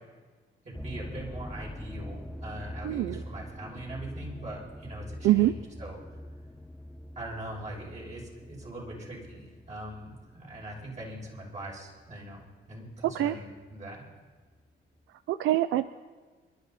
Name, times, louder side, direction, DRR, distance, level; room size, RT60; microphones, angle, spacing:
voice 1, 0.6-6.2 7.1-14.0, right 1 dB, 35° right, -4 dB, 6.7 m, -42 dB
sound 1, 0.7-13.0 13.6-14.0 14.6-14.7 15.0-15.1, equal, ahead, 0.8 m, -44 dB
voice 2, 2.8-3.2 5.2-5.5 13.0-13.3 15.3-15.9, right 14 dB, 85° right, 13 dB, 0.5 m, -24 dB
27.5 x 12.0 x 4.2 m, 1.4 s
cardioid pair, 90°, 20 cm